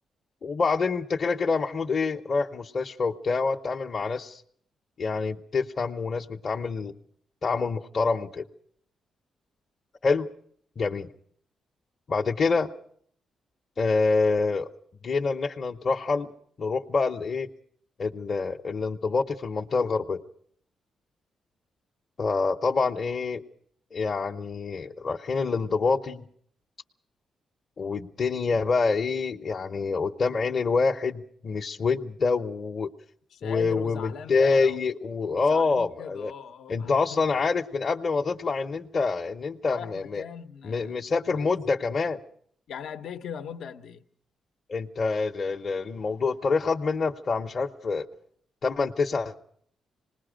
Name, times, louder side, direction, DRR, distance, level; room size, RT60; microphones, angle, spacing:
voice 1, 0.4-4.4 5.0-6.9 7.4-8.4 10.0-10.3 10.8-11.1 12.1-12.7 13.8-14.7 15.0-16.3 16.6-17.5 18.0-20.2 22.2-23.4 23.9-26.3 27.8-32.9 33.4-36.3 36.7-40.2 40.6-42.2 44.7-48.0 48.6-49.4, left 4 dB, 45° left, 0.8 m, -26 dB
voice 2, 33.3-34.8 35.4-37.2 39.7-41.5 42.7-44.0, left 7 dB, 75° left, 0.9 m, -40 dB
26.5 x 20.0 x 5.1 m
cardioid pair, 105°, 0 cm